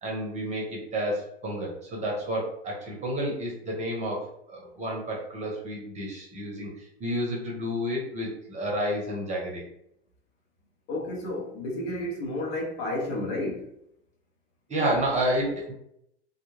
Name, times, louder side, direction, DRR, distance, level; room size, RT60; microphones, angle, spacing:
voice 1, 0.0-6.7 7.0-9.6 14.7-15.7, equal, 20° right, 0.8 m, -30 dB
voice 2, 10.9-13.7, left 1 dB, 60° left, 0.9 m, -31 dB
2.3 x 2.2 x 3.1 m
hypercardioid pair, 105°, 35 cm